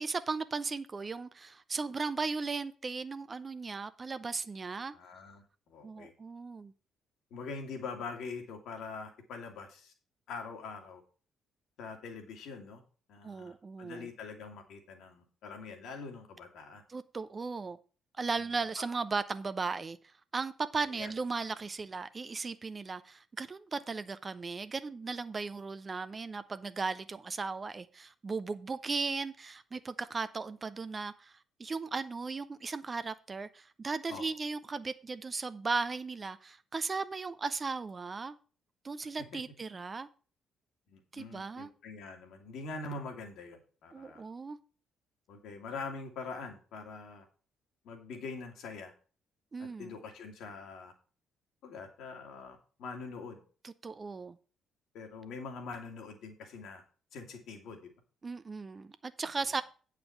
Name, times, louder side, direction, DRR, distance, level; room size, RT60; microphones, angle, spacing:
voice 1, 0.0-4.9 5.8-6.7 13.2-14.1 16.9-17.8 18.2-38.4 38.8-40.1 41.1-41.7 43.9-44.6 49.5-49.9 53.6-54.4 58.2-59.6, right 4 dB, 30° right, 0.7 m, -37 dB
voice 2, 4.9-6.1 7.3-9.9 10.3-11.0 11.8-12.8 13.1-16.8 20.9-21.1 34.1-34.3 39.3-39.4 40.9-44.2 45.3-47.3 47.8-48.9 49.6-50.9 51.6-53.4 54.9-56.8 57.1-57.9, left 4 dB, 60° left, 2.1 m, -44 dB
8.8 x 5.0 x 7.1 m
figure-of-eight pair, 45°, 0 cm